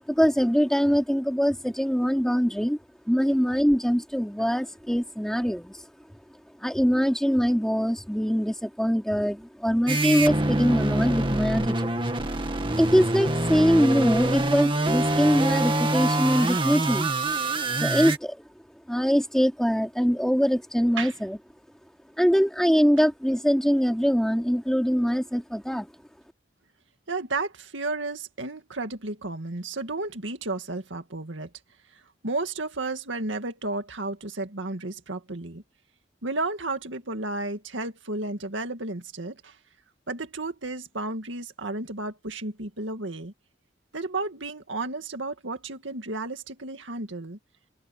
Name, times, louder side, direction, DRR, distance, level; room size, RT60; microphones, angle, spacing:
voice 1, 0.1-2.8 3.1-5.8 6.6-12.0 12.8-17.1 17.7-18.4 18.9-21.4 22.2-25.9, equal, 5° left, 3.1 m, -23 dB
sound 1, 9.9-18.2, right 2 dB, 25° right, 2.0 m, -25 dB
voice 2, 27.1-31.5 31.9-35.6 36.2-39.6 40.1-43.3 43.9-47.4, right 2 dB, 85° right, 2.1 m, -33 dB
open air
head